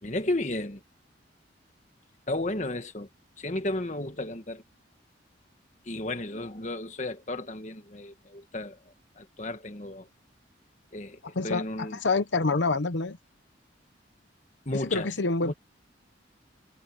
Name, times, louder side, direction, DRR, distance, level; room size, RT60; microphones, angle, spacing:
voice 1, 0.0-0.8 2.3-3.1 3.4-4.6 5.8-10.1 10.9-12.0 14.6-15.1 15.4-15.5, left 2 dB, 40° left, 1.6 m, -33 dB
voice 2, 11.2-13.2 14.7-15.5, left 3 dB, 75° left, 0.9 m, -27 dB
head